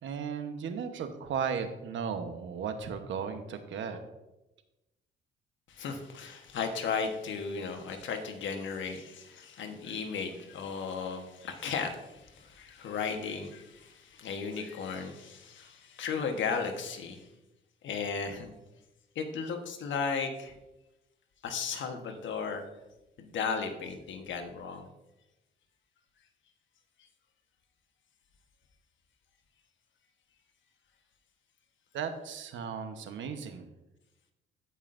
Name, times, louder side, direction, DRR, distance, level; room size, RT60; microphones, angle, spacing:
voice 1, 0.0-4.0 31.9-33.7, right 6 dB, 70° right, 7 dB, 1.1 m, -35 dB
voice 2, 5.7-17.3 17.8-18.5 19.1-20.5 21.4-22.6 23.2-24.9, left 5 dB, 70° left, 5 dB, 1.2 m, -35 dB
15.5 x 5.6 x 2.6 m, 0.98 s
cardioid pair, 90°, 20 cm